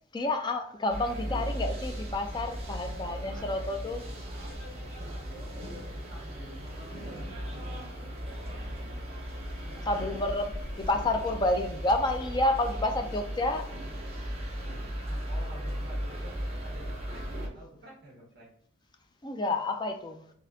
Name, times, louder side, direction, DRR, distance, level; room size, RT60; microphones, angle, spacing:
voice 1, 0.1-4.1 9.9-10.5 10.8-13.7 14.6-14.7 19.2-20.2, left 2 dB, 20° left, 4 dB, 0.4 m, -29 dB
sound 1, 0.9-17.5, equal, 30° right, 1.1 m, -37 dB
voice 2, 5.2-9.1 9.6-10.3 11.4-11.6 15.0-18.5, right 1 dB, 50° right, -4 dB, 1.6 m, -51 dB
4.1 x 3.6 x 2.7 m, 0.65 s
head